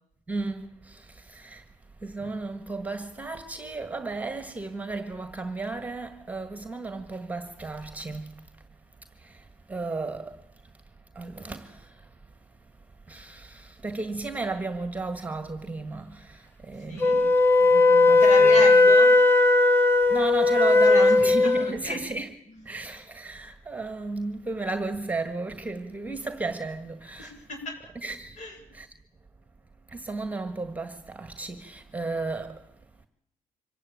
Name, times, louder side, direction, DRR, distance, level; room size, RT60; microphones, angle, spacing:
voice 1, 0.3-1.6 2.0-8.3 9.7-10.3 11.2-11.8 13.1-17.3 17.7-18.5 20.1-22.4 22.7-27.3 28.0-28.4 28.7-28.9 29.9-32.6, right 3 dB, 10° right, 1.7 m, -34 dB
voice 2, 16.9-17.2 18.2-19.1 20.8-22.0 27.2-27.8 28.4-28.6, left 2 dB, 60° left, 7.5 m, -33 dB
Wind instrument woodwind instrument, 17.0-21.7, left 2 dB, 15° left, 1.3 m, -17 dB
25.5 x 16.0 x 8.9 m
cardioid pair, 120°, 14 cm